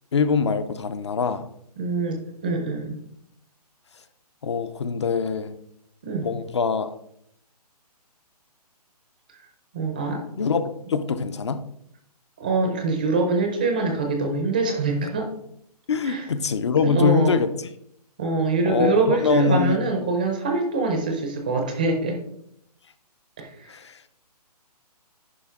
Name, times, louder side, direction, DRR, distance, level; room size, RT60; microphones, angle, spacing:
voice 1, 0.1-1.5 4.4-5.6 6.2-6.9 10.4-11.6 15.9-17.5 18.6-19.8 23.7-24.0, left 5 dB, 45° left, 12 dB, 0.5 m, -23 dB
voice 2, 1.8-2.2 2.4-3.0 6.0-6.3 9.7-10.2 12.4-15.3 16.0-16.3 16.8-17.4 18.2-22.2 23.4-23.7, right 3 dB, 15° right, 4 dB, 0.5 m, -24 dB
10.0 x 5.3 x 3.6 m, 0.72 s
hypercardioid pair, 175°, 20 cm